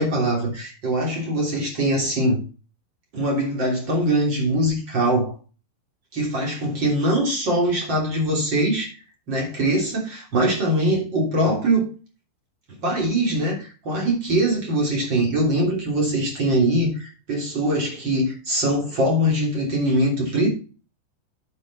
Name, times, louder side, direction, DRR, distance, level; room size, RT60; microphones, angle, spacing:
voice 1, 0.0-2.5 3.1-5.3 6.1-8.9 9.3-11.9 12.8-20.5, right 1 dB, 30° right, 3.2 m, -22 dB
10.0 x 6.2 x 4.2 m
omnidirectional pair, 5.3 m